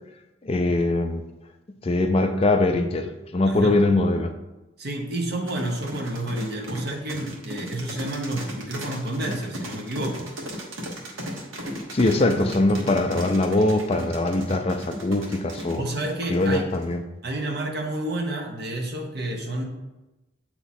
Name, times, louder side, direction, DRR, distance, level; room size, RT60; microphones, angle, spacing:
voice 1, 0.4-1.2 1.8-4.3 11.9-15.9 16.3-17.0, left 2 dB, 30° left, 7 dB, 0.4 m, -22 dB
voice 2, 3.4-3.8 4.8-10.3 15.7-16.7 17.2-19.6, right 1 dB, 50° right, 2 dB, 0.9 m, -30 dB
sound 1, 5.5-16.9, equal, 85° right, 1.2 m, -36 dB
8.3 x 3.0 x 4.2 m, 1.0 s
head